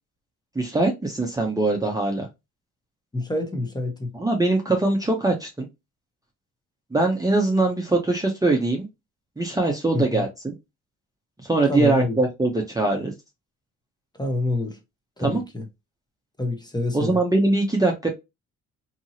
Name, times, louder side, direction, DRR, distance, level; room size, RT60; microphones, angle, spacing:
voice 1, 0.5-2.3 4.1-5.7 6.9-8.9 9.4-10.5 11.4-13.1 15.2-15.4 16.9-18.1, right 2 dB, 10° right, 0.7 m, -22 dB
voice 2, 3.1-4.1 9.9-10.2 11.7-12.2 14.2-14.8 15.2-15.6 16.4-17.2, left 2 dB, 10° left, 1.0 m, -26 dB
2.8 x 2.7 x 2.6 m
cardioid pair, 75°, 33 cm